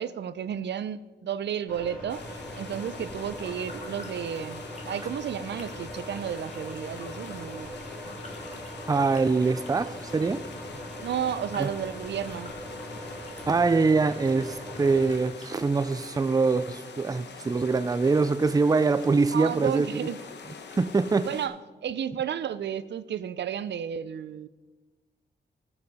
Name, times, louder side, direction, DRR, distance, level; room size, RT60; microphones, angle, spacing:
voice 1, 0.0-7.8 11.0-12.5 19.3-20.2 21.2-21.6 21.8-24.5, right 8 dB, 75° right, 0.5 m, -32 dB
sound 1, 1.7-15.1, equal, 5° left, 4.1 m, -41 dB
sound 2, 2.1-21.5, left 5 dB, 75° left, 1.1 m, -44 dB
sound 3, 3.2-16.2, left 2 dB, 40° left, 2.0 m, -52 dB
voice 2, 8.9-10.4 11.6-11.7 13.5-19.9 20.8-21.3, right 4 dB, 20° right, 0.4 m, -24 dB
15.5 x 6.9 x 4.1 m
cardioid pair, 70°, 18 cm